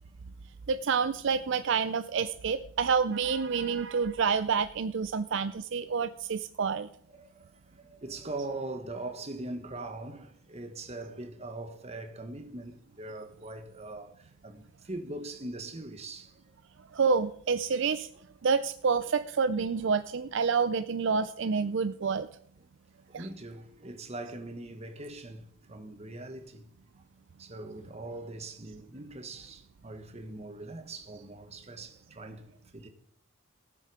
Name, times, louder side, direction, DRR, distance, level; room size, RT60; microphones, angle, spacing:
voice 1, 0.7-6.9 16.9-18.1 18.4-22.3 23.1-23.3, right 5 dB, 65° right, 0.5 m, -28 dB
voice 2, 7.1-16.4 19.5-19.7 23.1-26.7 27.4-32.9, right 2 dB, 30° right, 1.4 m, -41 dB
18.0 x 7.7 x 4.9 m
head